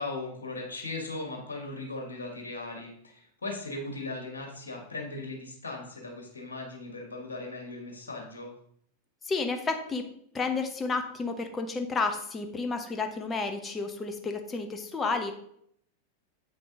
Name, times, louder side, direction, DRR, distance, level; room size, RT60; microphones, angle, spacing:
voice 1, 0.0-8.5, left 2 dB, 70° left, 0 dB, 1.8 m, -38 dB
voice 2, 9.2-10.0 10.3-15.3, left 4 dB, 20° left, 6 dB, 0.9 m, -31 dB
7.8 x 5.2 x 3.8 m, 0.67 s
figure-of-eight pair, 90°, 0 cm